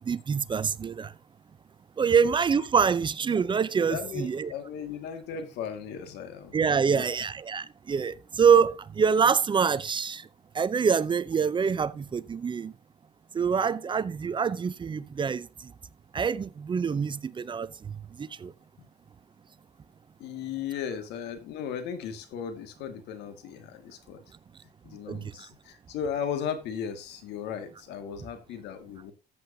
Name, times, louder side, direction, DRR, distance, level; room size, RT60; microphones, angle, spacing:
voice 1, 0.1-1.1 2.0-4.5 6.5-10.2 10.5-12.7 13.3-15.5 16.1-17.7 18.2-18.5 25.1-25.2, right 6 dB, 30° right, 0.6 m, -25 dB
voice 2, 3.9-6.5 6.9-7.2 20.2-24.2 24.8-29.1, left 7 dB, 85° left, 2.0 m, -36 dB
14.0 x 7.8 x 2.7 m
cardioid pair, 110°, 17 cm